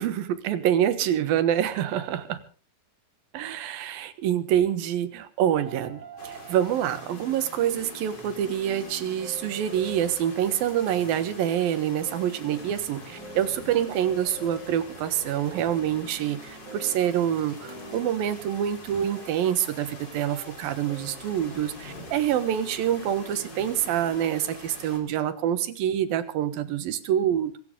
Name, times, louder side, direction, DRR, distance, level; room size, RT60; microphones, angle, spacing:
voice 1, 0.0-2.4 3.3-27.6, right 10 dB, 70° right, 12 dB, 3.0 m, -26 dB
sound 1, 5.4-24.6, right 2 dB, 50° right, 7.0 m, -46 dB
sound 2, 6.2-25.0, left 2 dB, 30° left, 4.1 m, -45 dB
24.5 x 14.5 x 3.8 m, 0.37 s
omnidirectional pair, 4.5 m